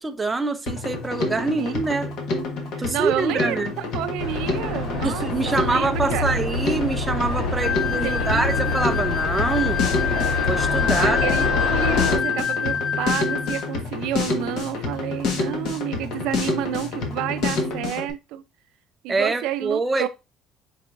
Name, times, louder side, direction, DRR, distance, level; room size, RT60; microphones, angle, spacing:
voice 1, 0.0-2.1 2.8-3.7 5.0-9.8 10.5-11.2 19.1-20.1, right 3 dB, 15° right, 0.4 m, -25 dB
Drum kit, 0.7-18.1, left 3 dB, 60° left, 1.2 m, -28 dB
voice 2, 1.6-2.0 2.7-6.3 8.0-8.7 11.0-18.4 19.0-20.1, right 12 dB, 75° right, 0.5 m, -30 dB
sound 1, 4.2-12.2, left 3 dB, 80° left, 2.4 m, -26 dB
sound 2, 7.6-13.7, left 7 dB, 40° left, 0.9 m, -26 dB
4.8 x 4.5 x 2.4 m
cardioid pair, 150°, 0 cm